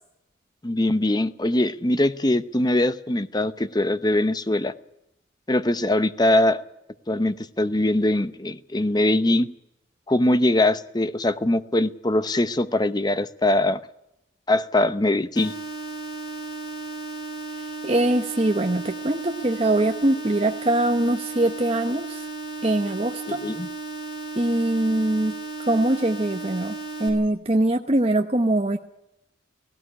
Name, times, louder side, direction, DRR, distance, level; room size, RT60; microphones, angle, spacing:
voice 1, 0.6-4.7 5.5-6.6 7.1-9.5 10.1-13.8 14.5-15.5 23.3-23.7, left 1 dB, 20° left, 13 dB, 0.8 m, -22 dB
sound 1, 15.4-27.1, right 3 dB, 55° left, 6.8 m, -35 dB
voice 2, 17.8-22.3 22.6-23.4 24.4-25.3 25.6-28.8, right 1 dB, 30° right, 5 dB, 0.9 m, -23 dB
17.5 x 16.5 x 10.0 m, 0.85 s
head